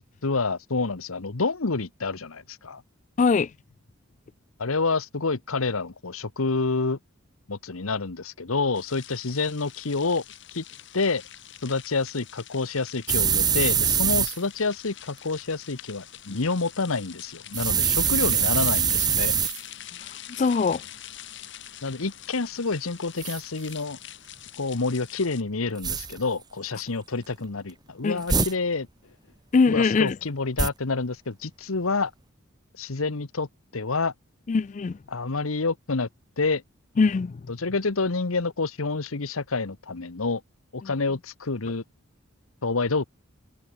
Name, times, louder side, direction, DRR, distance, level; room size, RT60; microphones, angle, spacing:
voice 1, 0.2-2.8 4.6-7.0 7.5-10.2 10.5-10.6 10.9-11.2 11.6-19.3 21.8-24.0 24.6-28.9 29.7-32.1 32.8-33.5 33.7-34.1 35.1-36.1 36.4-36.6 37.5-40.4 40.7-41.8 42.6-43.0, left 3 dB, 80° left, 1.2 m, -28 dB
voice 2, 3.2-3.5 20.4-20.8 28.0-28.5 29.5-30.2 34.5-35.0 37.0-37.4 40.8-40.9, left 4 dB, 35° left, 0.3 m, -22 dB
sound 1, 8.7-25.4, left 12 dB, 55° left, 2.8 m, -45 dB
sound 2, 13.1-14.4 17.5-19.6 23.2-23.4 25.8-26.2 28.2-28.5 30.6-30.7, right 7 dB, 20° right, 1.4 m, -23 dB
head